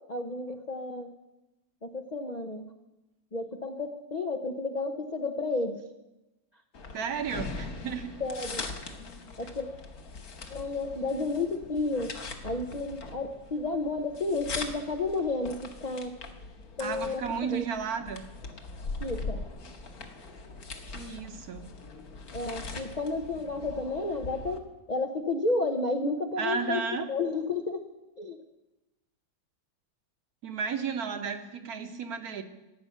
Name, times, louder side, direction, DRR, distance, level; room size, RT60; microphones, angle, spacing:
voice 1, 0.1-1.1 1.8-2.7 3.3-5.8 8.2-8.6 9.4-9.7 10.5-12.1 12.4-16.2 16.8-17.6 19.0-19.4 22.3-27.8 28.2-28.4, left 3 dB, 75° left, 4 dB, 0.3 m, -32 dB
sound 1, 6.7-24.6, left 3 dB, 55° left, 1.6 m, -41 dB
voice 2, 6.9-8.1 16.8-18.2 20.9-21.7 26.4-27.1 30.4-32.4, right 6 dB, 60° right, 7 dB, 1.3 m, -33 dB
14.0 x 6.1 x 9.3 m, 1.0 s
omnidirectional pair, 2.0 m